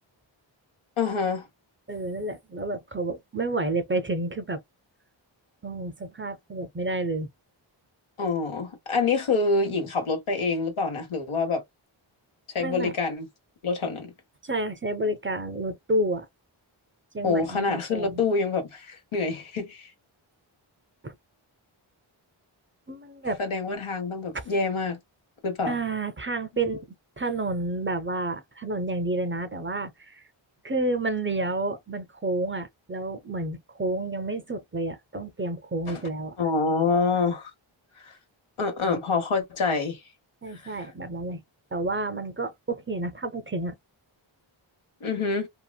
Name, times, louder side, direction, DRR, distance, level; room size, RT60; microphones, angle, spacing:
voice 1, 1.0-1.5 8.2-11.6 12.5-13.3 13.6-14.1 17.2-19.9 23.4-25.0 25.4-25.8 35.9-36.0 36.4-37.5 38.0-38.2 38.6-40.0 40.5-40.8 45.0-45.5, left 4 dB, 85° left, 1.0 m, -26 dB
voice 2, 1.9-4.6 5.6-7.3 12.6-12.9 14.4-16.3 17.1-18.2 21.0-21.1 22.9-23.4 25.6-26.9 27.2-30.2 30.6-36.4 38.9-39.0 40.4-41.4 41.7-43.7, right 2 dB, 25° right, 0.5 m, -30 dB
2.8 x 2.4 x 2.2 m
cardioid pair, 45°, 48 cm